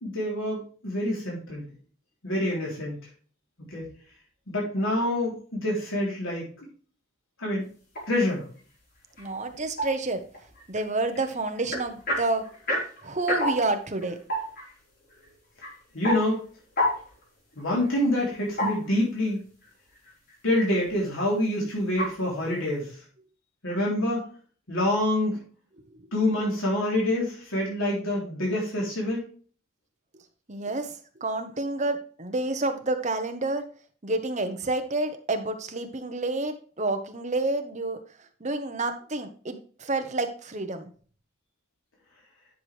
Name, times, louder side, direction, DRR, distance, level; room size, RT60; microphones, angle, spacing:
voice 1, 0.0-1.6 2.2-3.0 3.7-3.9 4.5-6.7 7.4-7.7 8.1-8.5 15.9-16.4 17.6-19.4 20.4-23.0 23.6-24.3 24.7-25.5 26.1-29.3, left 1 dB, 85° left, -3 dB, 3.5 m, -26 dB
sound 1, 8.0-8.3 8.6-19.4 19.6-20.4 20.7-21.2 21.8-22.2, equal, 50° left, 4.3 m, -32 dB
voice 2, 9.2-10.2 10.7-12.4 13.0-14.2 30.5-33.7 34.0-38.0 38.4-40.9, right 2 dB, 35° right, 7 dB, 1.0 m, -29 dB
10.5 x 6.1 x 3.3 m, 0.42 s
head